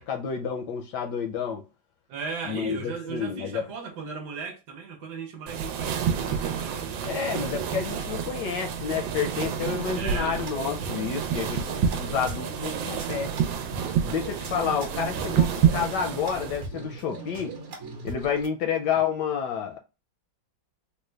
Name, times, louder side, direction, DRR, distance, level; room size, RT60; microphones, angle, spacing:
voice 1, 0.0-1.6 2.5-3.6 7.1-13.3 14.0-17.6 18.0-19.8, left 7 dB, 75° left, 1.0 m, -30 dB
voice 2, 2.1-7.2 9.9-10.4, right 5 dB, 70° right, 1.2 m, -37 dB
sound 1, 5.5-16.6, right 8 dB, 90° right, 1.4 m, -29 dB
sound 2, 9.9-18.5, right 4 dB, 50° right, 1.0 m, -39 dB
3.8 x 2.2 x 3.1 m
omnidirectional pair, 2.1 m